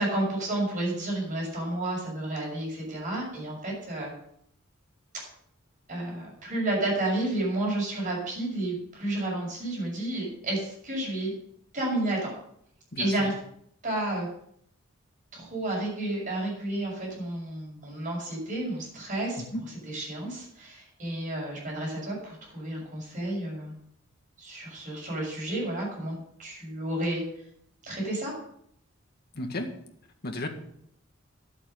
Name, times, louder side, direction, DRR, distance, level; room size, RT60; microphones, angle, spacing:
voice 1, 0.0-4.1 5.9-11.3 11.7-12.3 13.0-13.4 13.8-14.3 15.3-19.4 19.8-23.7 24.4-27.2 27.8-28.3, right 1 dB, 40° right, -2 dB, 6.7 m, -31 dB
voice 2, 12.9-13.3 19.5-19.6 29.4-29.7 30.2-30.5, left 1 dB, 50° left, 4 dB, 1.8 m, -33 dB
11.0 x 8.4 x 6.7 m, 0.70 s
head